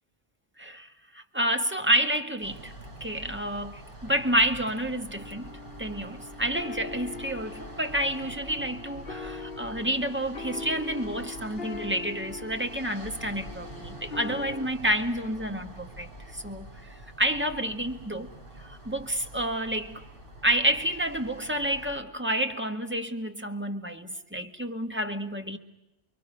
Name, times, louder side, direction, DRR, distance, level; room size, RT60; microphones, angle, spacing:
voice 1, 0.6-0.9 1.1-2.7 3.0-5.5 5.8-18.3 18.6-20.0 20.4-25.6, right 1 dB, 10° right, 1.7 m, -29 dB
sound 1, 2.4-22.0, right 1 dB, 55° right, 3.6 m, -46 dB
sound 2, 5.1-14.7, left 3 dB, 60° left, 1.4 m, -41 dB
30.0 x 22.5 x 6.6 m
omnidirectional pair, 1.1 m